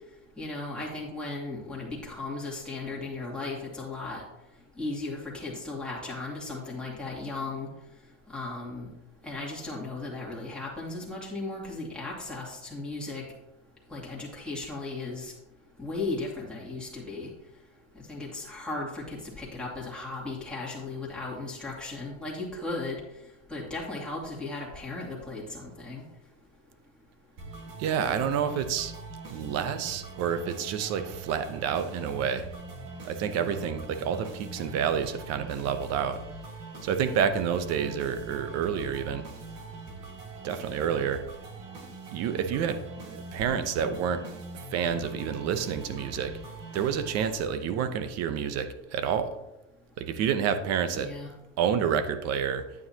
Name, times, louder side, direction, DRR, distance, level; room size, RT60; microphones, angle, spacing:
voice 1, 0.4-4.2 4.8-7.7 8.3-8.9 9.2-13.2 13.9-15.3 15.8-17.3 18.1-23.0 23.5-26.0 50.9-51.3, left 3 dB, ahead, -6 dB, 2.4 m, -36 dB
sound 1, 27.4-47.4, right 3 dB, 60° right, 1.9 m, -42 dB
voice 2, 27.8-28.9 29.3-32.5 33.0-36.2 36.8-39.2 40.4-41.2 42.1-42.8 43.1-44.4 44.7-46.3 46.7-49.3 50.0-51.1 51.6-52.6, right 8 dB, 45° right, 11 dB, 0.8 m, -29 dB
9.6 x 8.6 x 2.9 m, 0.92 s
supercardioid pair, 145°, 38 cm